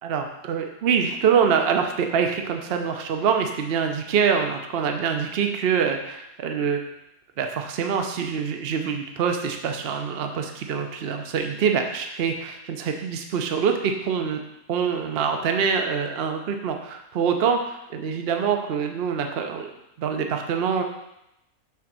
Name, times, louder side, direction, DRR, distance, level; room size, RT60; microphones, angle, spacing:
voice 1, 0.0-6.9 7.4-14.4 14.7-20.8, right 6 dB, 55° right, 4 dB, 0.8 m, -25 dB
6.0 x 3.8 x 6.0 m, 0.85 s
omnidirectional pair, 1.5 m